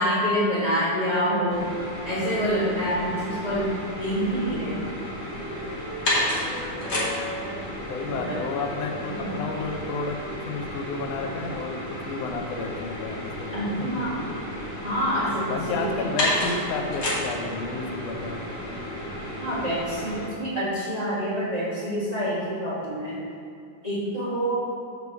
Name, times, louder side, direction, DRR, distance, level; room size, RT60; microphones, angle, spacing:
voice 1, 0.0-1.7 2.0-3.7 3.9-4.7 8.2-8.4 9.2-9.3 13.5-14.3 14.8-15.9 19.4-23.2 23.8-24.6, equal, 15° right, -10 dB, 1.4 m, -26 dB
sound 1, 1.5-20.3, left 1 dB, 40° left, 1.7 m, -32 dB
Wind instrument woodwind instrument, 5.2-7.6 8.0-12.4, equal, 80° right, 3.0 m, -42 dB
voice 2, 7.9-10.2 10.5-14.0 15.5-18.4, left 4 dB, 80° left, 2 dB, 1.4 m, -31 dB
7.3 x 4.7 x 6.8 m, 2.5 s
omnidirectional pair, 3.7 m